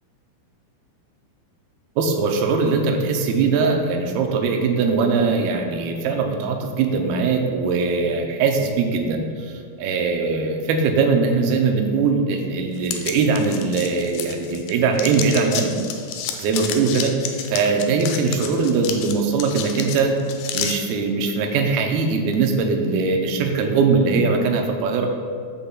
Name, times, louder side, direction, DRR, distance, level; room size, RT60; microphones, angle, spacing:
voice 1, 2.0-15.7 16.4-17.1 17.5-20.1 20.5-25.1, right 4 dB, 80° right, 3 dB, 2.6 m, -21 dB
sound 1, 12.8-14.7 15.0-20.7, left 8 dB, 80° left, 2.5 m, -30 dB
14.0 x 5.4 x 2.3 m, 2.1 s
omnidirectional pair, 4.5 m